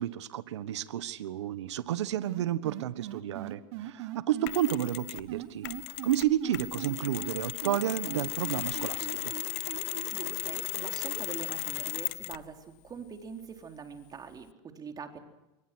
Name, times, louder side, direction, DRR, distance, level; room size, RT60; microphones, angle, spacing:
voice 1, 0.0-9.3, right 12 dB, 90° right, 14 dB, 1.4 m, -31 dB
sound 1, 2.2-4.5 5.3-7.3 7.6-11.2, right 15 dB, 70° right, 2.7 m, -40 dB
Mechanisms, 4.5-5.3 5.6-12.5, left 24 dB, 65° left, 0.9 m, -36 dB
voice 2, 10.1-15.2, right 6 dB, 25° right, 5 dB, 3.9 m, -44 dB
27.5 x 23.5 x 6.3 m, 0.96 s
supercardioid pair, 115°, 14 cm